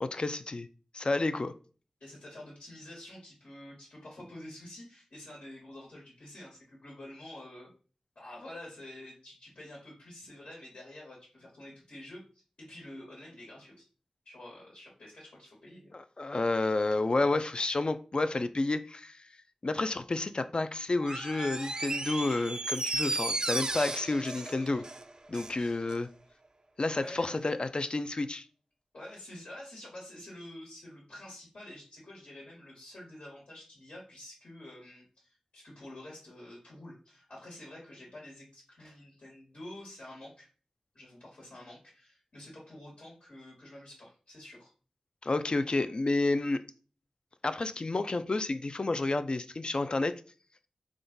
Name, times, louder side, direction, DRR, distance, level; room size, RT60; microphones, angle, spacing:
voice 1, 0.0-0.7 0.9-1.5 15.9-19.2 19.6-24.9 25.3-26.1 26.8-28.4 45.2-46.6 47.4-50.2, left 2 dB, 45° left, 0.3 m, -30 dB
voice 2, 2.0-7.7 8.1-13.8 14.2-16.0 25.5-26.0 26.9-27.6 28.9-40.5 40.9-44.7, left 1 dB, 75° left, 1.4 m, -48 dB
Door, 21.0-25.6 25.9-26.0, right 2 dB, 35° right, 0.3 m, -34 dB
3.6 x 2.3 x 3.9 m
wide cardioid pair, 60°, 2 cm